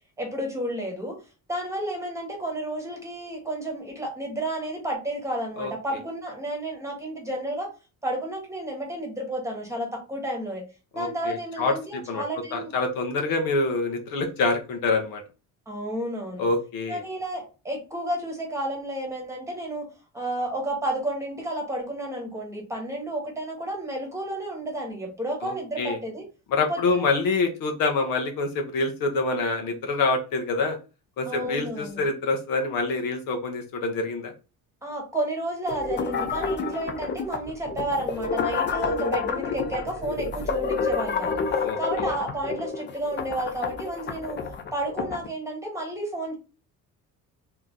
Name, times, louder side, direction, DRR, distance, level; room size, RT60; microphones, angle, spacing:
voice 1, 0.2-1.2 1.5-7.7 8.0-10.6 10.9-12.7 15.7-16.5 16.9-19.9 20.1-26.3 26.7-27.1 31.3-32.0 34.8-44.4 44.7-46.3, right 1 dB, 10° right, 0 dB, 1.2 m, -31 dB
voice 2, 10.9-12.2 12.5-15.2 16.4-17.0 25.4-26.0 26.5-30.8 31.2-34.3 41.6-41.8, left 3 dB, 75° left, 4 dB, 1.1 m, -26 dB
sound 1, 35.7-45.3, left 5 dB, 35° left, 0.5 m, -29 dB
3.3 x 2.9 x 3.7 m, 0.32 s
cardioid pair, 165°, 34 cm